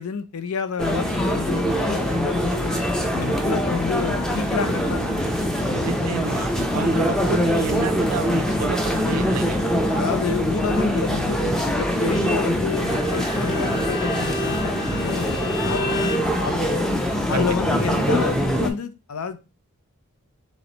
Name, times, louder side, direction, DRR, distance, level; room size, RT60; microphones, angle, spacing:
voice 1, 0.0-2.8 3.1-6.2 9.8-16.1 16.4-16.9 17.3-19.4, left 5 dB, 80° left, 11 dB, 0.5 m, -30 dB
sound 1, 0.8-18.7, equal, ahead, 0.5 m, -23 dB
voice 2, 5.8-9.6 17.3-17.9, right 6 dB, 90° right, 12 dB, 0.5 m, -30 dB
Bowed string instrument, 12.6-16.3, left 1 dB, 45° left, 0.9 m, -31 dB
3.3 x 3.1 x 3.9 m, 0.29 s
head